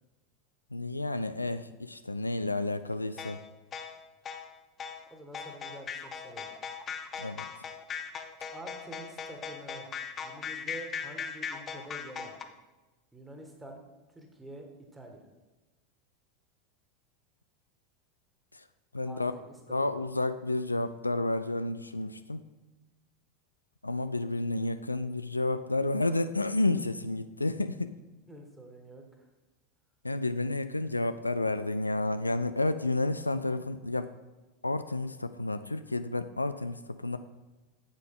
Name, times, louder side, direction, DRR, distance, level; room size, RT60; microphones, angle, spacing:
voice 1, 0.7-3.4 7.2-7.5 18.5-18.7 18.9-19.3 19.7-22.4 23.8-27.9 30.0-34.1 34.6-37.2, left 2 dB, 85° left, 12 dB, 0.3 m, -31 dB
sound 1, 3.2-12.4, left 6 dB, 25° left, 0.7 m, -39 dB
voice 2, 5.1-6.5 8.5-9.9 10.2-12.4 13.1-13.8 14.1-15.3 19.0-19.5 19.8-20.0 28.3-29.3, right 1 dB, 10° right, 3 dB, 1.7 m, -47 dB
8.8 x 7.5 x 3.7 m, 1.1 s
figure-of-eight pair, 80°, 0 cm